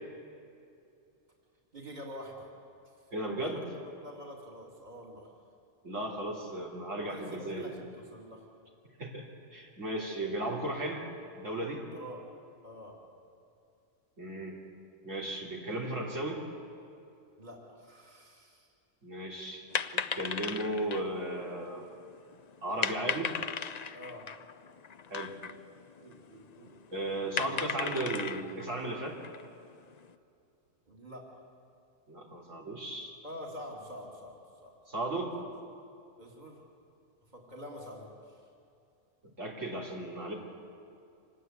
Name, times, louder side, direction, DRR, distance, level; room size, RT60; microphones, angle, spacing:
voice 1, 1.7-2.5 3.4-3.6 4.0-5.3 7.0-8.5 11.9-12.3 12.6-13.0 17.4-18.7 23.9-24.3 26.0-26.8 30.9-31.4 33.2-34.7 35.4-35.5 36.2-36.6 37.3-38.4, equal, 35° right, -1 dB, 3.1 m, -46 dB
voice 2, 3.1-3.7 5.8-7.7 9.0-11.1 11.4-11.9 14.2-14.6 15.0-16.4 19.0-21.9 22.6-23.3 25.1-25.3 26.9-29.2 32.1-33.2 34.9-35.3 39.4-40.3, right 1 dB, 70° right, -2 dB, 3.5 m, -35 dB
sound 1, 19.7-30.1, left 6 dB, 45° left, 0.6 m, -38 dB
26.0 x 20.0 x 8.2 m, 2.6 s
omnidirectional pair, 1.4 m